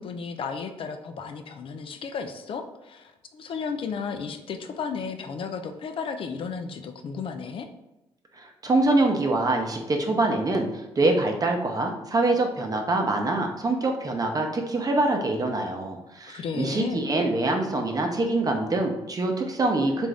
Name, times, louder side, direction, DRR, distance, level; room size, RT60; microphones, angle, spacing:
voice 1, 0.0-7.7 16.3-17.0, left 5 dB, 55° left, 7 dB, 0.4 m, -34 dB
voice 2, 8.3-20.1, right 2 dB, 35° right, 3 dB, 0.7 m, -25 dB
3.6 x 2.6 x 3.3 m, 0.94 s
supercardioid pair, 65°, 11 cm